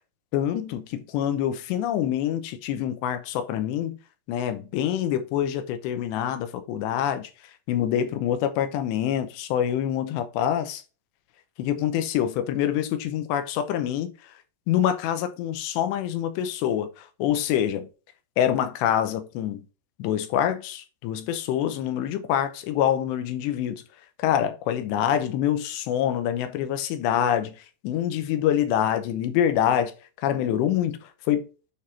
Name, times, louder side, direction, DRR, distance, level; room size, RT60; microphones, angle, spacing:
voice 1, 0.3-4.0 4.3-7.3 7.7-10.8 11.6-14.1 14.7-17.9 18.4-19.7 20.0-23.8 24.2-27.6 27.8-29.9 30.2-31.4, left 10 dB, 90° left, 3.0 m, -26 dB
9.1 x 3.6 x 4.1 m
omnidirectional pair, 5.0 m